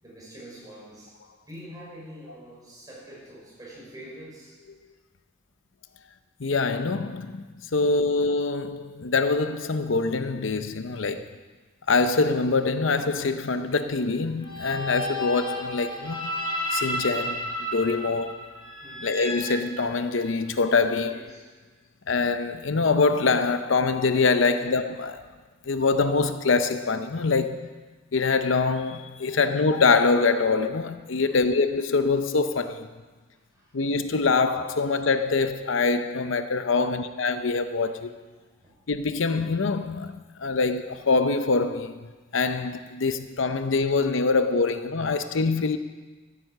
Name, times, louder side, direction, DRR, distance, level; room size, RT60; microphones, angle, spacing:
voice 1, 0.0-1.1 1.4-4.6 7.8-8.1 18.0-18.2 18.8-19.1 21.1-21.4 24.4-24.6 27.2-27.3 29.3-29.4 31.2-31.5 33.3-33.9 36.7-37.1 38.6-38.7, equal, 20° right, 5.8 m, -45 dB
voice 2, 6.4-7.5 7.7-11.3 11.9-16.3 16.7-17.4 17.7-18.4 19.0-21.2 22.1-25.2 25.7-27.7 28.1-32.9 33.7-38.1 38.9-45.8, left 4 dB, 75° left, 0.7 m, -24 dB
sound 1, 14.4-20.4, equal, 25° left, 4.1 m, -32 dB
14.5 x 9.8 x 6.5 m
head